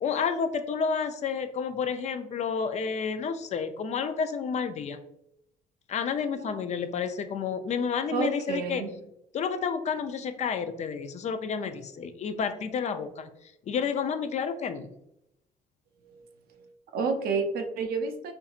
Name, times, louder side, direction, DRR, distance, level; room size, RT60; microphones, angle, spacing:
voice 1, 0.0-5.0 5.9-8.8 9.3-13.3 13.7-14.9, left 6 dB, 40° left, 9 dB, 0.4 m, -30 dB
voice 2, 8.1-8.9 16.0-16.2 16.5-18.3, right 4 dB, 65° right, 6 dB, 0.6 m, -30 dB
4.5 x 2.7 x 2.4 m, 0.80 s
cardioid pair, 110°, 17 cm